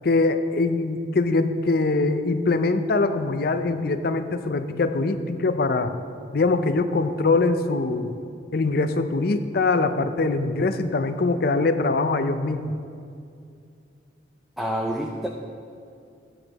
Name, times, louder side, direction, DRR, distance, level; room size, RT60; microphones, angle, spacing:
voice 1, 0.0-5.9 6.3-8.1 8.5-12.7, left 3 dB, 55° left, 9 dB, 0.5 m, -23 dB
voice 2, 14.6-15.3, equal, ahead, 0 dB, 0.4 m, -27 dB
13.5 x 8.5 x 2.9 m, 2.4 s
head